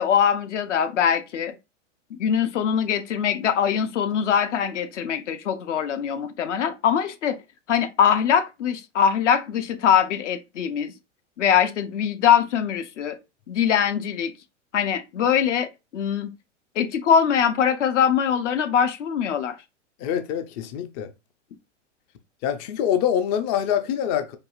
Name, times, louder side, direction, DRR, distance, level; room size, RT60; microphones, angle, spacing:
voice 1, 0.0-1.6 2.1-7.4 7.7-10.9 11.4-13.2 13.5-14.3 14.7-16.3 16.8-19.6, left 8 dB, 75° left, 0.7 m, -22 dB
voice 2, 20.0-21.1 22.4-24.4, left 9 dB, 35° left, 0.4 m, -25 dB
4.7 x 2.4 x 2.4 m
hypercardioid pair, 105°, 37 cm